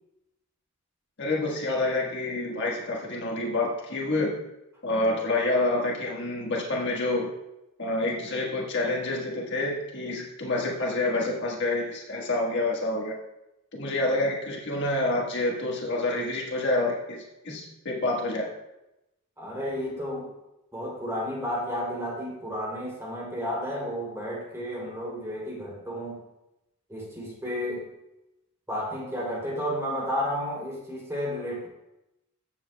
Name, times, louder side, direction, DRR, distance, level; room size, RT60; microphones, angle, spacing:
voice 1, 1.2-4.4 4.8-7.3 7.8-13.1 13.7-18.5, left 2 dB, 55° left, -2 dB, 1.5 m, -28 dB
voice 2, 19.4-20.3 20.7-26.2 26.9-27.9 28.7-31.7, equal, 15° right, -3 dB, 3.0 m, -32 dB
14.5 x 7.2 x 2.3 m, 0.91 s
head